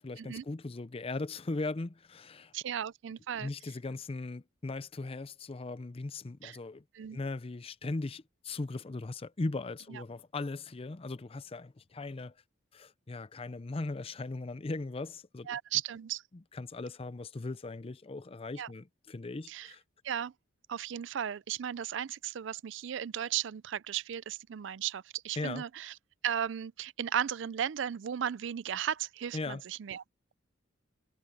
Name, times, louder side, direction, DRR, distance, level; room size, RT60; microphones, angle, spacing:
voice 1, 0.0-2.5 3.4-6.8 7.1-12.3 12.7-15.6 16.5-19.8 25.4-25.6 29.3-29.6, left 3 dB, 30° left, 0.5 m, -38 dB
voice 2, 2.5-3.5 6.4-6.6 6.9-7.2 9.9-10.0 15.5-16.2 18.6-18.7 19.5-19.7 20.0-20.3 20.7-25.9 26.2-30.0, right 9 dB, 65° right, 0.4 m, -35 dB
head